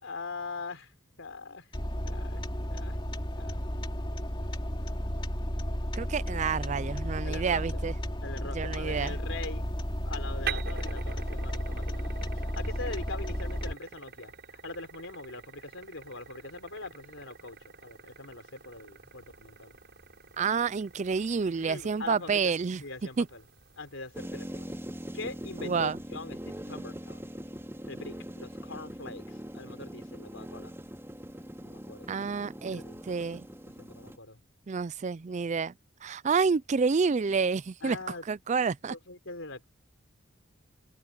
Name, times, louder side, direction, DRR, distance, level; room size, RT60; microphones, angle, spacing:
voice 1, 0.0-1.7 2.1-2.4 2.7-3.0 3.4-3.6 7.2-7.8 8.2-9.6 10.0-19.8 21.6-22.5 22.8-23.4 23.8-24.7 25.1-27.3 27.9-30.7 31.6-32.1 32.7-33.0 33.8-34.4 37.8-38.2 38.9-39.6, left 3 dB, 70° left, 4.1 m, -42 dB
sound 1, 1.7-13.7, equal, 25° left, 2.7 m, -33 dB
voice 2, 5.9-7.9 8.5-9.1 20.4-22.8 23.2-23.3 25.6-26.0 32.1-33.4 34.7-35.7 36.0-38.0 38.3-39.0, right 5 dB, 35° right, 0.4 m, -29 dB
sound 2, 8.9-25.9, right 6 dB, 55° right, 7.7 m, -46 dB
sound 3, 24.1-34.2, equal, 10° right, 4.3 m, -42 dB
head